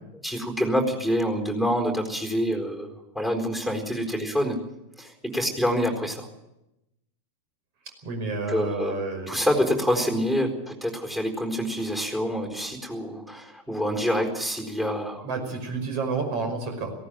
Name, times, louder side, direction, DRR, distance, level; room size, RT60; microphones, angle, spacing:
voice 1, 0.2-4.6 5.0-6.3 8.5-8.9 9.3-15.3, equal, 5° right, 2 dB, 4.3 m, -26 dB
voice 2, 8.0-9.4 15.2-16.9, right 4 dB, 45° right, 5 dB, 5.4 m, -30 dB
18.0 x 16.5 x 9.1 m, 0.90 s
figure-of-eight pair, 90°, 0 cm